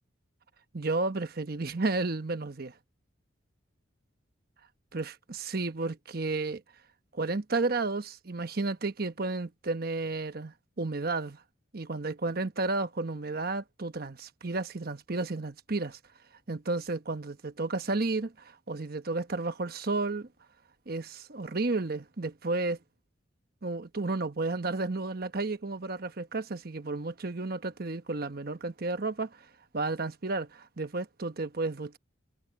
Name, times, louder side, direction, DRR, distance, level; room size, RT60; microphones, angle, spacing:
voice 1, 0.7-2.8 4.9-6.6 7.1-11.4 11.7-16.0 16.5-20.3 20.9-22.8 23.6-29.5 29.7-32.0, right 3 dB, 50° right, 1.1 m, -32 dB
head